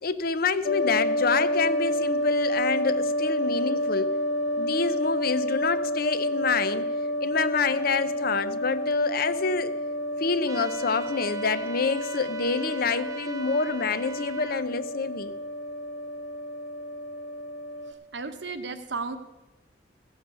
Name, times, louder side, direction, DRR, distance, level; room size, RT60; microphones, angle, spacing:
voice 1, 0.0-4.1 4.6-6.8 7.2-9.7 10.2-15.3, left 4 dB, 50° left, 13 dB, 0.7 m, -27 dB
sound 1, 0.6-17.9, left 1 dB, 70° left, 1.5 m, -29 dB
sound 2, 10.5-14.6, right 4 dB, 20° right, 0.6 m, -41 dB
voice 2, 17.9-19.2, right 4 dB, 70° right, 9 dB, 1.1 m, -34 dB
16.0 x 7.2 x 6.7 m, 1.0 s
head